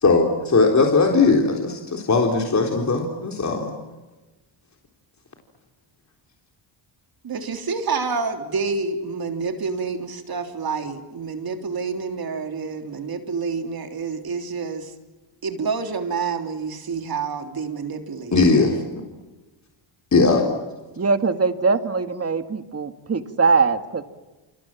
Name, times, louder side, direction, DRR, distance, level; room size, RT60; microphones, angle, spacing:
voice 1, 0.0-3.7 18.3-18.8 20.1-20.4, left 3 dB, 35° left, 1 dB, 3.9 m, -18 dB
voice 2, 7.2-14.9 15.4-18.7, right 4 dB, 45° right, 5 dB, 3.4 m, -28 dB
voice 3, 21.0-24.0, right 4 dB, 30° right, 8 dB, 2.2 m, -21 dB
28.0 x 28.0 x 7.5 m, 1.2 s
cardioid pair, 100°, 50 cm